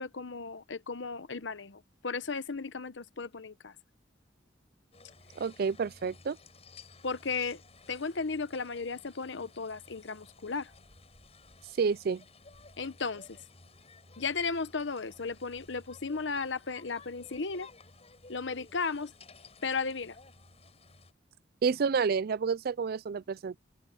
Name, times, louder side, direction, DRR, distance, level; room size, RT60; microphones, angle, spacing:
voice 1, 0.0-3.7 7.0-7.6 7.9-10.7 12.8-13.4 14.2-17.7 18.3-19.1 19.6-20.1, left 4 dB, 70° left, 1.0 m, -35 dB
sound 1, 4.9-21.1, left 3 dB, 35° left, 6.8 m, -55 dB
voice 2, 5.4-6.4 11.8-12.2 21.6-23.6, right 5 dB, 50° right, 0.4 m, -29 dB
open air
head